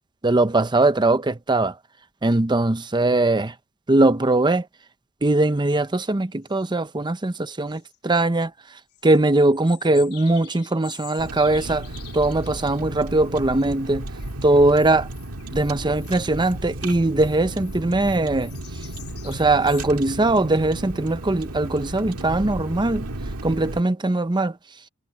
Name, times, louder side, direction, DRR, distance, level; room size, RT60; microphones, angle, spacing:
voice 1, 0.2-1.8 2.2-3.5 3.9-4.7 5.2-8.5 9.0-11.9 12.1-14.1 14.4-15.1 15.5-18.5 19.2-23.1 23.4-24.6, right 2 dB, 20° right, 0.7 m, -20 dB
sound 1, 5.7-5.8 6.4-6.7 7.7-8.0 8.9-12.8 13.6-13.7 14.0-19.9, left 14 dB, 80° left, 3.5 m, -47 dB
Car, 11.2-23.8, right 1 dB, 80° right, 2.0 m, -34 dB
head